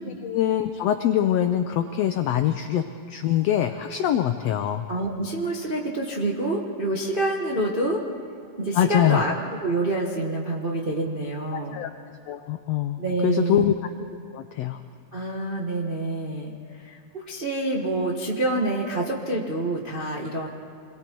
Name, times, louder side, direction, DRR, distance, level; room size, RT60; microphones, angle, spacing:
voice 1, 0.2-4.8 8.7-9.2 11.5-11.9 12.3-13.7 14.3-14.8, left 11 dB, 80° left, 8 dB, 1.4 m, -24 dB
voice 2, 4.9-8.0 8.6-9.3 9.6-11.8 13.0-13.7 15.1-20.5, right 2 dB, 35° right, -2 dB, 0.8 m, -27 dB
28.0 x 21.5 x 4.6 m, 2.3 s
omnidirectional pair, 3.6 m